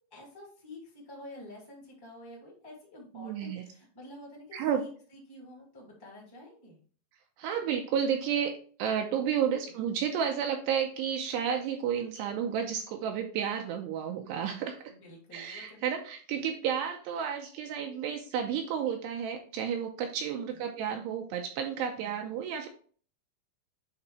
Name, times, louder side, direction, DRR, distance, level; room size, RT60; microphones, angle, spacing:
voice 1, 0.1-4.9 5.3-6.8 9.4-9.9 14.9-15.8 20.6-21.0, left 1 dB, 15° left, -3 dB, 0.7 m, -49 dB
voice 2, 3.1-3.6 4.5-4.8 7.4-8.5 8.8-14.9 15.3-22.7, right 8 dB, 85° right, 4 dB, 2.5 m, -31 dB
8.8 x 3.8 x 3.2 m, 0.43 s
omnidirectional pair, 5.4 m